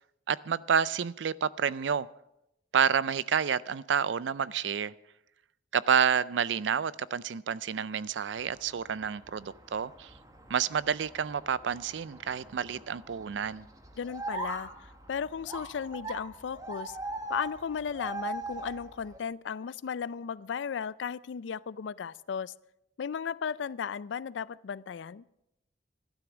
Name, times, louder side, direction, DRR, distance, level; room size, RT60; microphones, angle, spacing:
voice 1, 0.3-2.1 2.7-4.9 5.7-10.1 10.5-13.7, right 7 dB, 80° right, 0.4 m, -29 dB
sound 1, 8.4-19.2, right 2 dB, 20° right, 1.2 m, -42 dB
voice 2, 14.0-14.7 15.1-17.0 17.3-22.5 23.0-25.2, left 7 dB, 85° left, 0.4 m, -35 dB
13.0 x 11.5 x 6.1 m
head